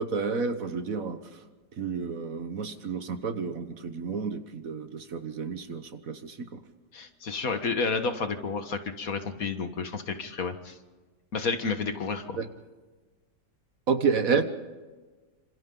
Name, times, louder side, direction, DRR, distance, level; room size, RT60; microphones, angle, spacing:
voice 1, 0.0-1.4 1.8-6.6 12.4-12.5 13.9-14.4, right 5 dB, 55° right, 9 dB, 1.5 m, -30 dB
voice 2, 6.9-10.8 11.3-12.4, left 4 dB, 55° left, 8 dB, 1.8 m, -31 dB
27.5 x 26.5 x 3.9 m, 1.3 s
omnidirectional pair, 1.8 m